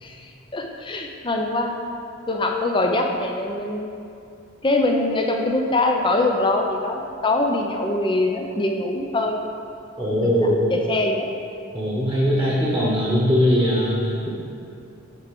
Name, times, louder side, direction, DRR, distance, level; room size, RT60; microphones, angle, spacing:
voice 1, 0.0-1.7 2.3-3.9 4.6-9.4 10.0-11.3, left 2 dB, 20° left, 2 dB, 0.5 m, -23 dB
voice 2, 10.0-10.6 11.7-14.3, equal, 5° right, -7 dB, 1.1 m, -20 dB
7.6 x 4.8 x 5.2 m, 2.6 s
head